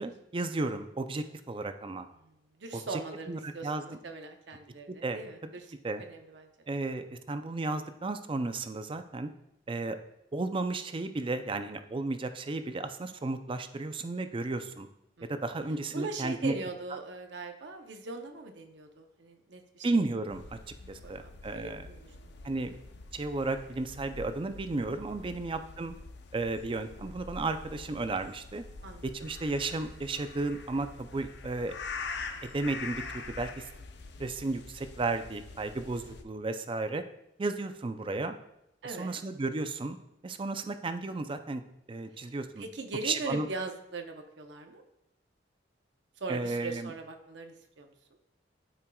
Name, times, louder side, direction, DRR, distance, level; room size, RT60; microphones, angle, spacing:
voice 1, 0.0-2.1 2.7-3.0 3.3-3.8 4.9-5.5 5.8-6.0 6.7-9.3 9.7-10.0 10.3-14.9 15.3-16.6 19.8-20.6 20.9-21.9 22.4-22.7 23.1-25.9 26.3-28.6 29.0-31.7 32.5-33.7 34.2-37.0 37.4-38.4 38.8-40.0 40.2-41.6 41.9-42.6 43.0-43.5 46.3-46.9, right 3 dB, 30° right, 9 dB, 0.4 m, -33 dB
voice 2, 2.2-5.7 6.0-6.5 15.2-15.3 15.9-20.0 21.0-22.1 25.4-25.5 28.8-29.1 38.8-39.2 42.6-44.8 46.2-47.9, right 3 dB, 70° right, 4 dB, 0.8 m, -40 dB
sound 1, 20.3-36.2, left 4 dB, 65° left, 0.6 m, -45 dB
12.0 x 4.5 x 2.3 m, 0.83 s
head